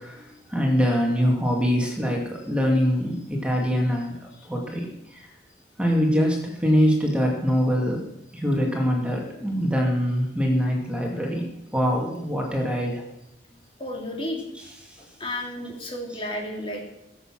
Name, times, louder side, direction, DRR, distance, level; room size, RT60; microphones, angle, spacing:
voice 1, 0.0-4.2 4.5-4.9 5.1-5.2 5.8-8.0 8.3-13.0, equal, 5° right, -1 dB, 2.3 m, -23 dB
voice 2, 13.8-14.4 15.0-16.8, left 1 dB, 30° left, 0 dB, 2.5 m, -32 dB
17.0 x 8.2 x 6.1 m, 0.88 s
head